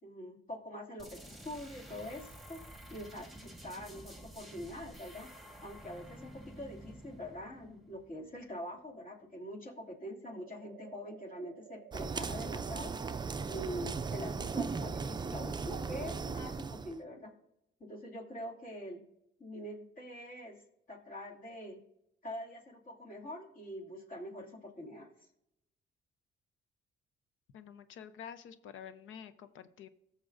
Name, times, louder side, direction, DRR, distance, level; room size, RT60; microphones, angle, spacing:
voice 1, 0.0-2.6 2.9-5.3 5.6-12.9 13.5-17.3 17.9-19.0 19.4-20.6 20.9-21.8 22.2-25.3, equal, 45° left, 1 dB, 2.6 m, -44 dB
sound 1, 1.0-8.6, right 1 dB, ahead, 1.6 m, -51 dB
sound 2, 10.3-15.3, right 13 dB, 85° right, 0.4 m, -54 dB
sound 3, 11.9-17.0, right 4 dB, 20° right, 0.4 m, -37 dB
voice 2, 27.5-29.9, left 8 dB, 80° left, 12 dB, 0.8 m, -49 dB
17.5 x 6.7 x 2.6 m, 0.84 s
cardioid pair, 90°, 20 cm